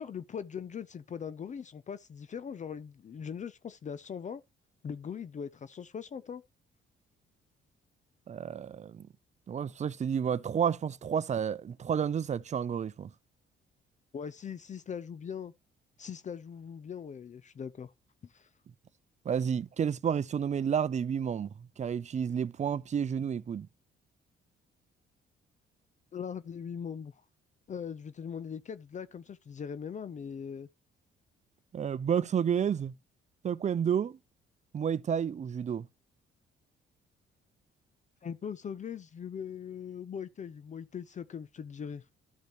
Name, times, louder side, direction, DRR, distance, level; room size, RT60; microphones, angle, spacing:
voice 1, 0.0-4.4 4.8-6.4 14.1-15.5 16.0-17.9 18.2-18.5 26.1-27.1 27.7-30.7 38.2-42.0, left 7 dB, 35° left, 0.5 m, -40 dB
voice 2, 8.3-9.1 9.5-13.1 19.2-23.7 31.7-32.9 33.4-34.2 34.7-35.9, right 8 dB, 35° right, 0.5 m, -30 dB
13.5 x 5.0 x 3.0 m
cardioid pair, 90°, 20 cm